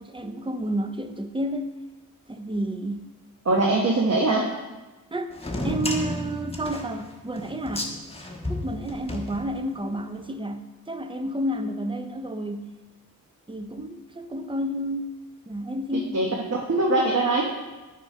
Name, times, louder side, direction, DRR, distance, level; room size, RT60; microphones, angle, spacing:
voice 1, 0.0-1.8 2.3-3.1 5.1-5.4 5.6-7.9 8.5-12.7 13.5-15.2 15.5-16.2, right 1 dB, 15° right, 8 dB, 0.6 m, -30 dB
voice 2, 3.4-4.5 15.9-17.4, right 2 dB, 45° right, -1 dB, 1.1 m, -22 dB
sound 1, 5.3-9.9, left 1 dB, 15° left, 1.2 m, -32 dB
9.6 x 4.3 x 5.5 m, 1.2 s
wide cardioid pair, 70°, 35 cm